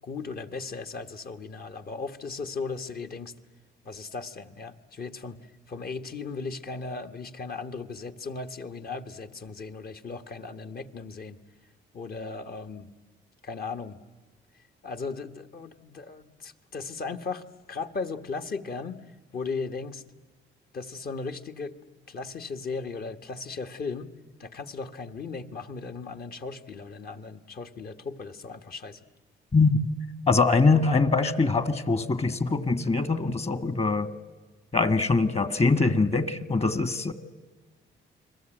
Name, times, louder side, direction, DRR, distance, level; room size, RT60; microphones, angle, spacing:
voice 1, 0.0-3.3 3.8-5.4 5.7-11.4 11.9-12.9 13.4-14.0 14.8-17.4 17.7-19.0 19.3-20.0 20.7-21.8 22.1-24.1 24.4-29.0, left 4 dB, 50° left, 7 dB, 1.6 m, -36 dB
voice 2, 30.3-34.1 34.7-37.1, left 3 dB, 30° left, 13 dB, 1.8 m, -23 dB
29.5 x 21.5 x 9.1 m, 1.3 s
cardioid pair, 90°, 20 cm